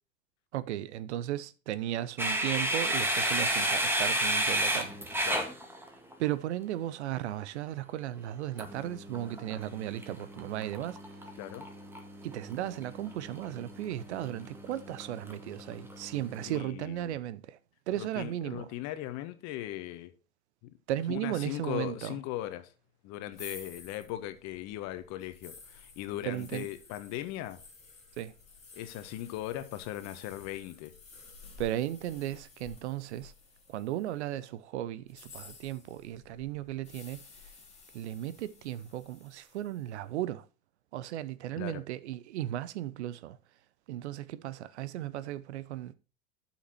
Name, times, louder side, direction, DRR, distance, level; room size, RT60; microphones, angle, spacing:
voice 1, 0.5-5.3 6.2-11.3 12.2-17.6 17.9-18.7 20.9-22.2 26.3-26.7 28.2-28.4 31.6-33.3 33.7-37.2 37.9-40.5 40.9-43.4 43.9-45.9, right 13 dB, 55° right, 0.8 m, -36 dB
sound 1, 2.2-6.3 8.6-16.6, right 1 dB, 5° right, 1.9 m, -33 dB
voice 2, 16.4-17.2 18.0-20.1 20.6-20.7 21.1-22.7 23.0-27.6 28.7-30.9 41.5-41.8, left 14 dB, 40° left, 1.3 m, -39 dB
sound 2, 23.3-34.3 35.0-39.9, left 4 dB, 15° left, 3.2 m, -53 dB
11.5 x 6.0 x 4.4 m
figure-of-eight pair, 85°, 40 cm